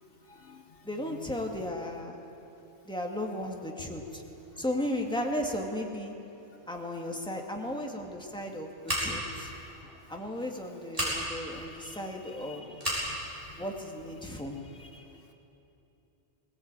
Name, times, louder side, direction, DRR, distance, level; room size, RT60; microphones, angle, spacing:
voice 1, 0.2-1.4 4.8-4.9 9.5-10.5 11.5-13.6 14.2-15.3, left 4 dB, 55° left, 4 dB, 1.3 m, -54 dB
voice 2, 0.8-2.2 2.9-4.2 4.6-6.1 6.7-9.5 10.1-12.6 13.6-14.5, left 1 dB, 5° left, 1 dB, 2.1 m, -35 dB
Scissors, 8.8-9.4 10.9-11.2 12.8-13.1, equal, 35° right, 7.1 m, -30 dB
20.5 x 19.5 x 9.0 m, 2.9 s
omnidirectional pair, 1.1 m